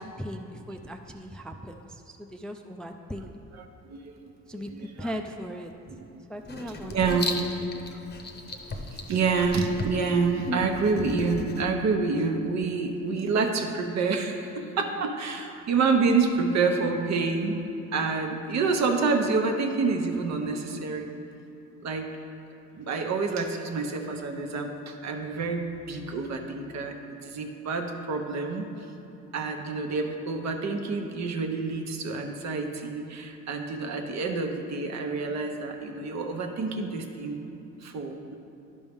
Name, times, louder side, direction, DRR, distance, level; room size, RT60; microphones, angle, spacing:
voice 1, 0.0-3.3 4.5-6.0 6.3-7.3, equal, 5° left, 4 dB, 0.3 m, -38 dB
voice 2, 3.6-4.2 4.5-5.1 6.1-6.2 6.6-7.4 7.9-8.0 8.5-8.6 8.9-17.6 17.9-21.1 21.8-22.1 22.7-27.0 27.2-28.6 29.3-38.4, right 4 dB, 65° right, 4 dB, 0.9 m, -28 dB
Writing, 6.5-11.6, left 2 dB, 35° left, 0.8 m, -36 dB
11.0 x 5.4 x 3.5 m, 2.9 s
cardioid pair, 90°, 30 cm